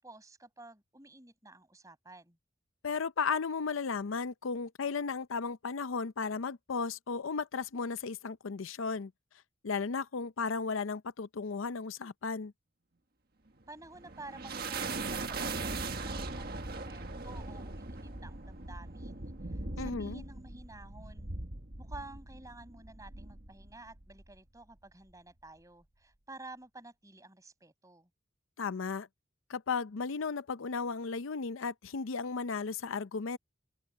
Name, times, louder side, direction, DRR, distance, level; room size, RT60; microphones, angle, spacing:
voice 1, 0.0-2.4 13.7-21.3 21.8-28.1, right 2 dB, 15° right, 7.6 m, -52 dB
voice 2, 2.8-9.1 9.6-12.5 19.8-20.2 28.6-29.1 29.5-33.4, left 5 dB, 80° left, 0.6 m, -35 dB
sound 1, 13.6-24.4, right 3 dB, 50° right, 1.7 m, -40 dB
open air
head